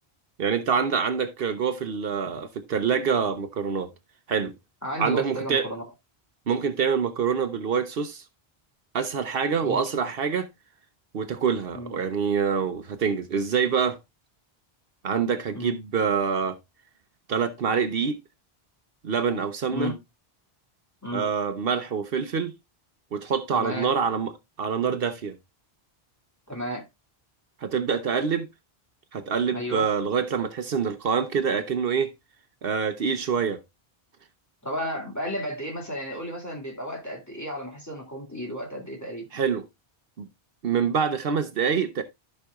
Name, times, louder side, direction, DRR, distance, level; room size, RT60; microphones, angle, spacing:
voice 1, 0.4-3.9 4.3-4.5 5.0-5.7 6.5-8.2 8.9-10.5 11.1-14.0 15.0-16.6 17.3-18.2 19.0-19.9 21.1-22.5 23.1-24.3 24.6-25.3 27.6-28.5 29.1-32.1 32.6-33.6 39.3-39.6 40.2-40.3 40.6-42.0, right 6 dB, 65° right, 0.9 m, -26 dB
voice 2, 4.8-5.8 9.6-9.8 11.7-11.9 15.5-15.7 19.7-20.0 21.0-21.3 23.5-23.9 26.5-26.9 29.5-29.9 34.6-39.3, equal, 15° left, 2.1 m, -33 dB
14.0 x 5.5 x 2.3 m
omnidirectional pair, 1.0 m